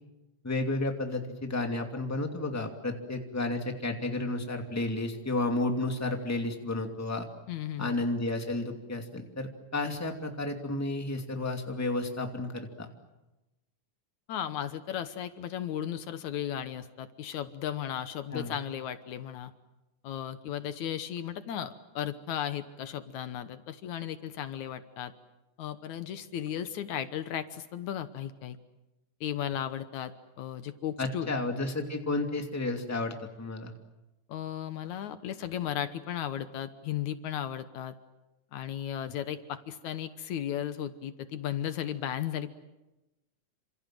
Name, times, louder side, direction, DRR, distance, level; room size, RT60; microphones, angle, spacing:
voice 1, 0.4-7.2 7.8-12.9 18.3-18.5 31.0-33.7, left 2 dB, 5° left, 4 dB, 2.2 m, -32 dB
voice 2, 7.5-8.0 14.3-19.5 20.0-25.1 25.6-28.6 29.2-30.1 30.4-31.3 34.3-37.9 38.5-42.5, left 10 dB, 75° left, 11 dB, 2.4 m, -35 dB
28.5 x 26.5 x 7.7 m, 1.0 s
omnidirectional pair, 3.5 m